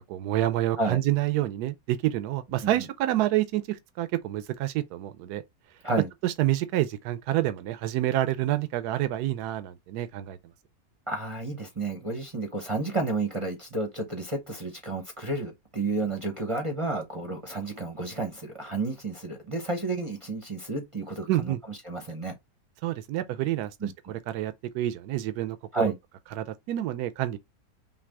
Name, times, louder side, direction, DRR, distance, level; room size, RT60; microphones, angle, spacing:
voice 1, 0.1-5.4 6.2-10.4 21.3-21.6 22.8-23.7 24.1-25.8 26.4-27.4, right 14 dB, 80° right, 1.1 m, -28 dB
voice 2, 11.1-22.4 23.8-24.1 25.7-25.9, right 3 dB, 25° right, 0.7 m, -31 dB
5.9 x 2.4 x 3.4 m
omnidirectional pair, 1.7 m